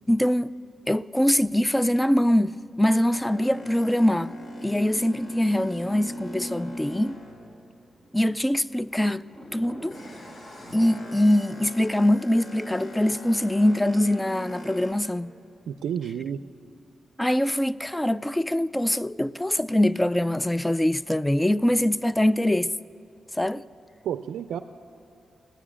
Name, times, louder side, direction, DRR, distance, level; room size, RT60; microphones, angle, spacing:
voice 1, 0.1-0.5 0.9-4.3 4.6-7.2 8.1-9.3 9.5-10.0 10.7-15.3 17.2-22.7 23.3-23.6, left 1 dB, 10° left, 0.3 m, -23 dB
Boat Water vehicle, 3.2-8.2 8.6-14.9, equal, 45° left, 3.3 m, -39 dB
voice 2, 15.7-16.4 24.0-24.6, right 9 dB, 85° right, 0.3 m, -30 dB
16.0 x 10.0 x 8.6 m
cardioid pair, 60°, 0 cm